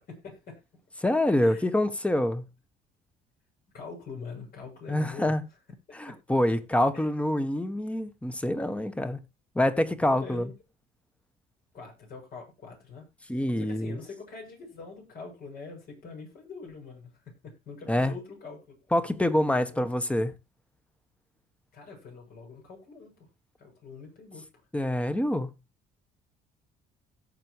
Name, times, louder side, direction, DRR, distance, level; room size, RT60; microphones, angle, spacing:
voice 1, 0.1-0.6 1.4-1.7 3.7-5.3 5.9-6.1 6.9-7.1 10.0-10.5 11.7-17.1 17.4-18.8 19.5-19.8 21.7-23.3 23.6-24.4, left 4 dB, 60° left, 7.8 m, -44 dB
voice 2, 1.0-2.5 4.9-5.4 5.9-9.2 9.5-10.5 13.3-14.0 17.9-18.1 18.9-20.4 24.7-25.5, left 1 dB, 5° left, 1.4 m, -26 dB
17.5 x 7.0 x 3.1 m
cardioid pair, 110°, 17 cm